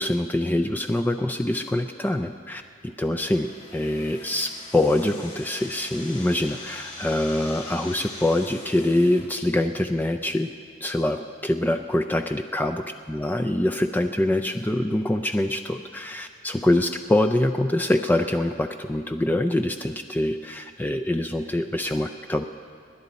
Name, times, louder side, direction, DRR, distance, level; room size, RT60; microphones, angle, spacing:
voice 1, 0.0-10.5 10.8-22.4, left 1 dB, 10° left, 5 dB, 0.4 m, -24 dB
sound 1, 3.1-9.2, left 3 dB, 40° left, 4.4 m, -42 dB
26.5 x 10.5 x 4.1 m, 2.2 s
head